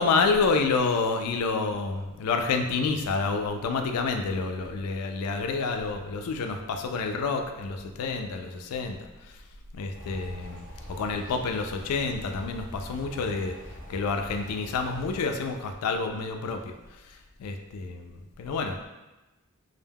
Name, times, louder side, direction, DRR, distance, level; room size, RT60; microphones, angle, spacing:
voice 1, 0.0-9.1 9.7-10.6 10.9-13.5 13.9-16.7 17.4-18.9, left 4 dB, 85° left, 5 dB, 0.3 m, -28 dB
sound 1, 9.9-15.2, equal, 10° left, 0.9 m, -44 dB
2.2 x 2.1 x 3.3 m, 1.1 s
head